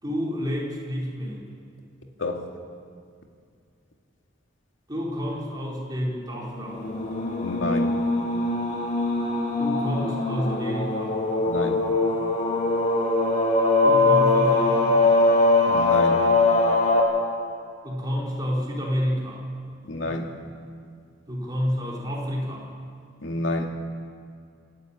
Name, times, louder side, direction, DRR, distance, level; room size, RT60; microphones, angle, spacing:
voice 1, 0.0-1.5 4.9-7.0 9.6-11.2 13.8-15.2 17.8-19.5 21.3-22.7, equal, 20° right, -3 dB, 4.2 m, -29 dB
sound 1, 6.7-17.0, left 2 dB, 40° left, 2.8 m, -22 dB
voice 2, 7.4-7.9 11.5-11.8 15.7-16.2 19.8-20.3 23.2-23.7, left 1 dB, 85° left, 3 dB, 2.2 m, -28 dB
27.5 x 11.5 x 8.9 m, 2.2 s
head